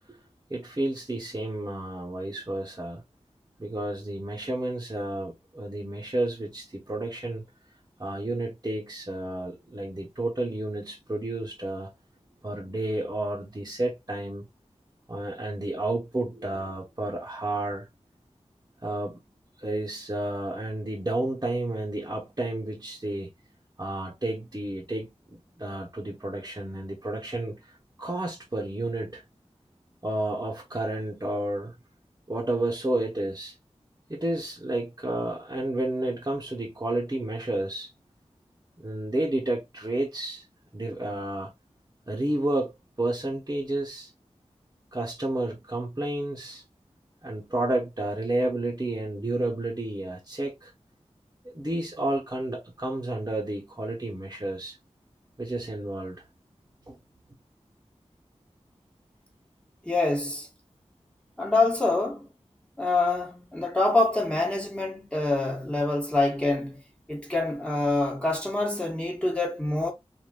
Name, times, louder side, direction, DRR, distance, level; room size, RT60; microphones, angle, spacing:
voice 1, 0.5-3.0 3.6-7.4 8.0-11.9 12.4-14.5 15.1-17.9 18.8-19.2 19.6-23.3 23.8-27.7 28.0-29.2 30.0-31.7 32.3-33.5 34.1-37.9 38.8-40.4 40.7-41.5 42.1-42.7 43.0-44.1 44.9-46.6 47.2-50.7 51.4-54.8 55.4-56.2 56.9-57.0, right 1 dB, 30° right, 0.9 m, -31 dB
voice 2, 59.8-60.5 61.4-62.3 62.8-66.8 67.1-69.9, left 2 dB, 10° left, 1.3 m, -26 dB
3.4 x 2.5 x 2.3 m
wide cardioid pair, 60°, 11 cm